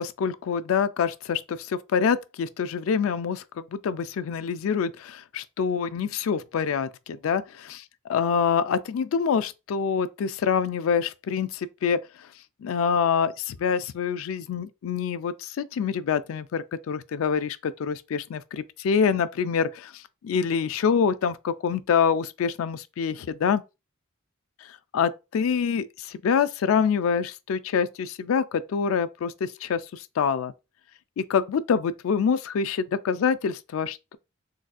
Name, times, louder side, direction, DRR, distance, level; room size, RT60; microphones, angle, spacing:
voice 1, 0.0-7.8 8.1-12.0 12.6-23.6 24.9-30.5 31.2-34.2, left 6 dB, 80° left, 0.3 m, -26 dB
3.9 x 2.4 x 2.3 m
head